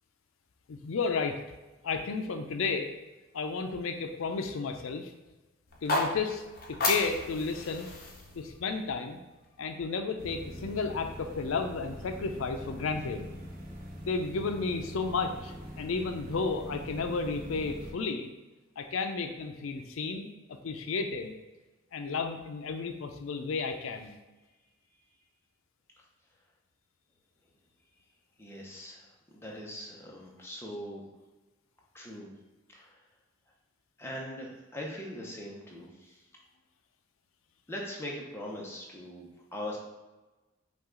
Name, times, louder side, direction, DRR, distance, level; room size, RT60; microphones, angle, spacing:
voice 1, 0.7-1.4 1.8-2.9 3.3-5.1 5.8-6.4 6.7-7.9 8.3-9.2 9.6-13.3 14.1-18.3 18.8-21.3 21.9-24.1, left 4 dB, 80° left, 6 dB, 0.4 m, -32 dB
sound 1, 5.7-9.8, left 2 dB, 45° left, 0.8 m, -34 dB
sound 2, 10.2-17.9, equal, 45° right, 0.7 m, -43 dB
voice 2, 28.4-31.0 31.9-32.3 32.7-33.0 34.0-36.2 37.7-39.8, left 1 dB, 10° left, -3 dB, 0.8 m, -41 dB
5.7 x 2.4 x 3.7 m, 1.1 s
head